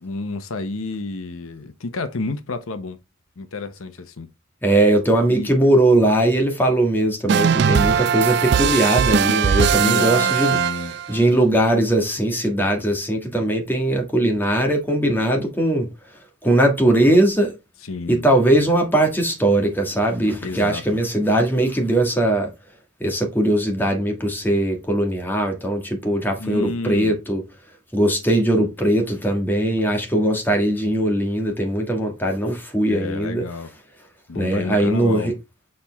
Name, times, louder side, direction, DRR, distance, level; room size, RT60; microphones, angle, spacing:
voice 1, 0.0-3.0 3.4-4.3 5.3-5.5 9.6-11.0 17.8-18.2 20.4-21.0 26.4-27.2 32.9-33.7 34.3-35.3, left 3 dB, 85° left, 0.8 m, -30 dB
voice 2, 4.6-10.6 11.1-15.9 16.4-17.5 18.1-22.5 23.0-27.4 27.9-33.4 34.3-35.3, right 1 dB, 10° left, 1.5 m, -20 dB
sound 1, 7.3-11.2, right 7 dB, 55° right, 0.3 m, -19 dB
6.6 x 4.3 x 3.4 m
head